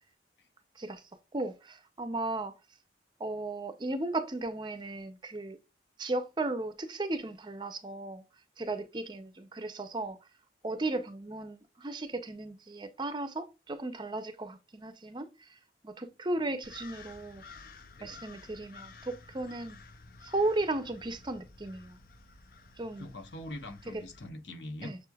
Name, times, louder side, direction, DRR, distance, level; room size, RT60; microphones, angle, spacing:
voice 1, 1.3-2.5 3.2-5.6 6.0-8.2 8.6-10.2 10.6-15.6 15.8-17.4 18.0-19.8 20.2-22.0 22.8-23.1 24.8-25.0, right 2 dB, 25° right, 0.5 m, -35 dB
sound 1, 16.6-24.3, left 4 dB, 55° left, 0.5 m, -52 dB
voice 2, 17.9-18.3 23.0-24.9, left 1 dB, 85° left, 1.0 m, -43 dB
6.6 x 3.2 x 2.3 m
head